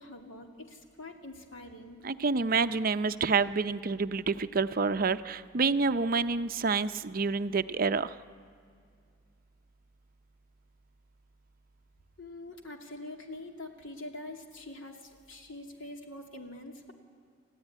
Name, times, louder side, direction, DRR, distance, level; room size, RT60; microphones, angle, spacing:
voice 1, 0.0-2.0 12.2-16.9, left 2 dB, 80° left, 3 dB, 2.7 m, -45 dB
voice 2, 2.0-8.1, right 4 dB, 45° right, 12 dB, 0.6 m, -28 dB
29.0 x 14.5 x 9.9 m, 2.3 s
head